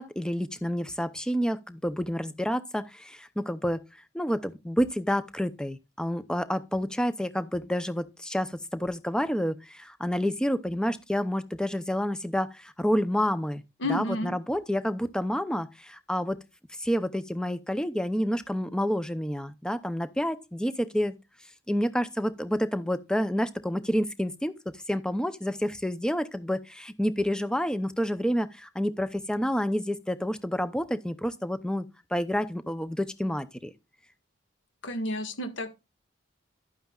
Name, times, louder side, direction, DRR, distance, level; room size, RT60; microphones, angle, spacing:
voice 1, 0.0-3.8 4.1-13.6 13.9-16.4 16.8-21.1 21.7-24.5 24.9-31.9 32.1-33.7, equal, 5° left, 0.6 m, -29 dB
voice 2, 13.8-14.3 34.8-35.7, left 1 dB, 70° left, 1.7 m, -31 dB
11.5 x 9.1 x 2.4 m
head